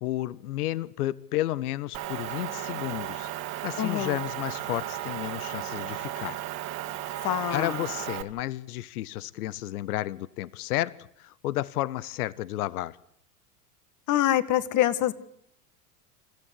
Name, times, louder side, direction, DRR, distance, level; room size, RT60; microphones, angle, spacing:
voice 1, 0.0-3.3 3.6-6.4 7.5-13.0, left 15 dB, 70° left, 20 dB, 0.9 m, -32 dB
Motor vehicle (road) / Engine, 1.9-8.2, right 13 dB, 50° right, 2.4 m, -35 dB
voice 2, 3.8-4.2 7.2-7.8 14.1-15.1, left 13 dB, 40° left, 14 dB, 1.6 m, -25 dB
28.0 x 15.0 x 8.3 m, 0.70 s
hypercardioid pair, 85°, 47 cm